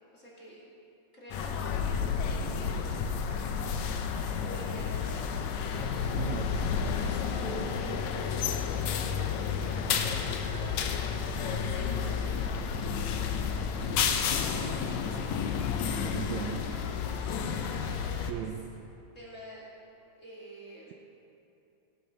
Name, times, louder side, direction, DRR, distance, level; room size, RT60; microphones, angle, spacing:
voice 1, 0.1-0.6 1.1-4.1 4.4-6.2 6.9-12.5 13.5-15.3 15.7-18.4 19.1-19.7 20.2-20.9, equal, 25° left, -6 dB, 2.7 m, -48 dB
sound 1, 1.3-18.3, left 6 dB, 70° left, 1.8 m, -31 dB
voice 2, 6.2-6.8 16.2-16.6 18.3-18.6, right 11 dB, 85° right, 5 dB, 1.6 m, -36 dB
sound 2, 7.3-13.3, equal, 25° right, 3.2 m, -49 dB
16.5 x 8.9 x 5.8 m, 2.8 s
omnidirectional pair, 3.8 m